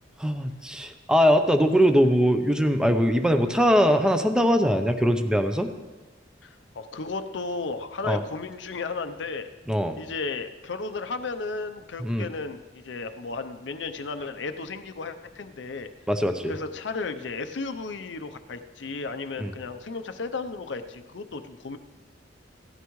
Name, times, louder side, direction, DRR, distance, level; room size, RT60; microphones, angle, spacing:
voice 1, 0.2-5.7 8.1-8.2 9.7-10.0 12.0-12.3 16.1-16.5 19.4-19.5, equal, 5° right, 7 dB, 0.6 m, -21 dB
voice 2, 6.4-9.5 10.0-15.9 16.5-21.8, left 4 dB, 70° left, 8 dB, 0.6 m, -34 dB
16.5 x 12.5 x 3.1 m, 1.2 s
head